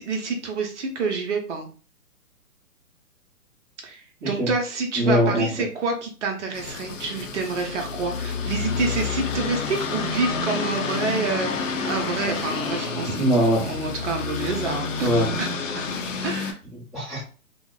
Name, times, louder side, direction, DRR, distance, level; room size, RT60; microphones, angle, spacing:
voice 1, 0.0-1.7 3.8-13.3 13.7-15.1 15.4-15.5 16.2-16.6, right 4 dB, 55° right, 3 dB, 0.7 m, -28 dB
voice 2, 5.0-5.5 13.1-13.7 15.0-15.3 16.7-17.2, equal, ahead, -10 dB, 0.7 m, -22 dB
sound 1, 6.5-16.5, left 5 dB, 60° left, 0.6 m, -29 dB
2.8 x 2.0 x 2.3 m, 0.37 s
hypercardioid pair, 130°, 43 cm